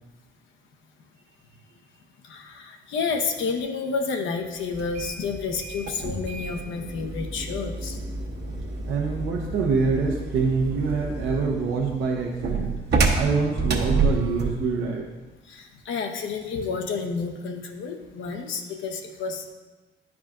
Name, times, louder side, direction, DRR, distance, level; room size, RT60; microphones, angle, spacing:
voice 1, 2.2-8.0 15.5-19.5, left 5 dB, 75° left, 3 dB, 0.7 m, -30 dB
sound 1, 4.7-14.6, right 3 dB, 55° right, 1.0 m, -29 dB
voice 2, 8.9-12.8 13.1-15.1, right 4 dB, 80° right, -2 dB, 0.8 m, -25 dB
10.0 x 4.8 x 2.5 m, 1.2 s
cardioid pair, 90°, 20 cm